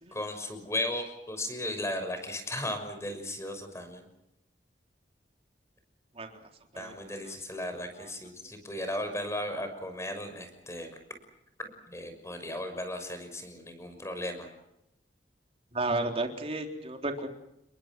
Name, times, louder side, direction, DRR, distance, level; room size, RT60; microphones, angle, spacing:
voice 1, 0.1-4.0 6.8-10.9 11.9-14.5, left 1 dB, 15° left, 7 dB, 6.1 m, -36 dB
voice 2, 15.7-17.3, right 2 dB, 35° right, 3 dB, 3.8 m, -32 dB
30.0 x 22.5 x 6.2 m, 0.83 s
head